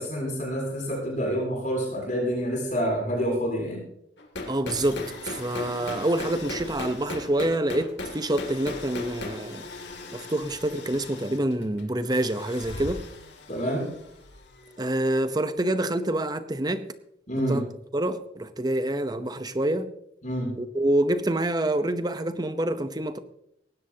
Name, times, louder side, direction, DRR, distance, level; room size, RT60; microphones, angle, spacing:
voice 1, 0.0-3.8 13.5-13.9 17.3-17.6 20.2-20.5, equal, 45° left, 7.3 m, -27 dB
sound 1, 4.2-15.0, left 2 dB, 75° left, 2.6 m, -38 dB
voice 2, 4.5-9.7 10.1-13.0 14.8-16.9 17.5-17.6 17.9-19.9 20.6-23.2, right 1 dB, 20° right, 0.8 m, -27 dB
19.0 x 16.5 x 2.9 m
head